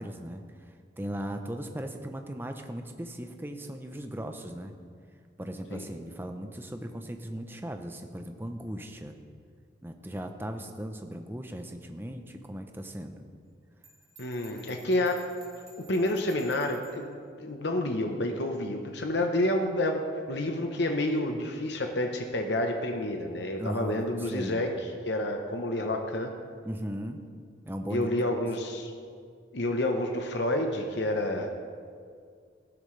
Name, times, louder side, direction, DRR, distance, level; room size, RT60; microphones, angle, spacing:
voice 1, 0.0-4.7 5.4-9.2 9.8-13.2 23.6-24.7 26.6-27.2 27.7-28.2, right 1 dB, 10° right, 5 dB, 0.6 m, -38 dB
Bell, 13.8-17.0, right 3 dB, 35° right, 2.7 m, -54 dB
voice 2, 14.2-15.2 15.9-20.0 20.3-24.7 25.1-26.3 27.9-28.9 29.5-31.5, left 1 dB, 70° left, 3 dB, 0.9 m, -29 dB
15.0 x 12.0 x 3.3 m, 2.1 s
head